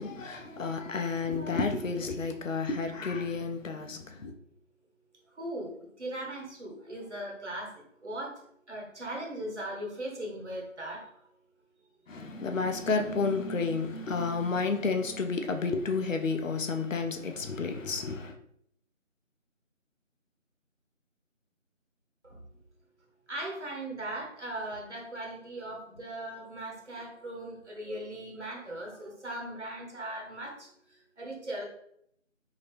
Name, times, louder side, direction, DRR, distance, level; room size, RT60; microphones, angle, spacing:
voice 1, 0.0-4.3 12.1-18.3, left 4 dB, 75° left, 0.6 m, -31 dB
voice 2, 5.4-8.4 8.7-11.2 22.2-22.4 23.3-31.7, right 1 dB, 60° right, 1.2 m, -39 dB
2.8 x 2.7 x 3.3 m
figure-of-eight pair, 170°, 39 cm